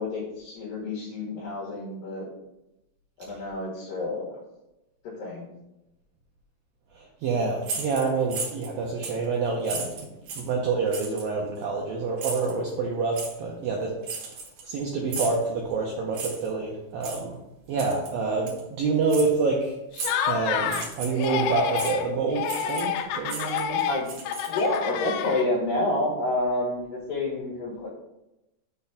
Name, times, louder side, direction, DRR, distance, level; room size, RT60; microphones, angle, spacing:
voice 1, 0.0-2.3 3.2-4.3 5.0-5.4 23.9-24.1 24.5-27.9, left 2 dB, 65° left, -5 dB, 2.6 m, -29 dB
voice 2, 7.0-10.0 10.4-14.2 14.6-17.4 17.7-19.7 20.3-23.8, right 4 dB, 80° right, -1 dB, 2.0 m, -27 dB
sound 1, 7.6-8.7 9.0-9.2 9.6-10.5 10.9-11.3 12.2-12.5 13.1-13.3 14.0-14.8 15.1-15.4 16.1-16.5 17.0-17.2 17.8-18.1 18.5-18.6 19.1-19.3 19.9-20.3 20.6-21.3 21.8-21.9 22.4-23.0 23.2-24.8, right 4 dB, 60° right, 2.5 m, -35 dB
Laughter, 19.9-20.9 21.2-22.1 22.3-25.7, left 8 dB, 85° left, 2.2 m, -28 dB
6.4 x 4.1 x 5.7 m, 0.92 s
omnidirectional pair, 5.2 m